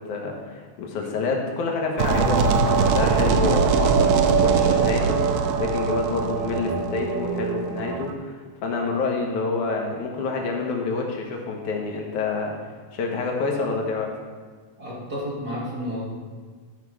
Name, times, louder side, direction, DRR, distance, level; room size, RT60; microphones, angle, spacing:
voice 1, 0.0-12.6 12.9-14.2, left 4 dB, 75° left, 1 dB, 2.6 m, -28 dB
sound 1, 2.0-8.1, right 5 dB, 80° right, 2.0 m, -21 dB
voice 2, 14.8-16.0, equal, 35° right, -6 dB, 2.2 m, -31 dB
12.5 x 5.7 x 4.8 m, 1.5 s
omnidirectional pair, 3.5 m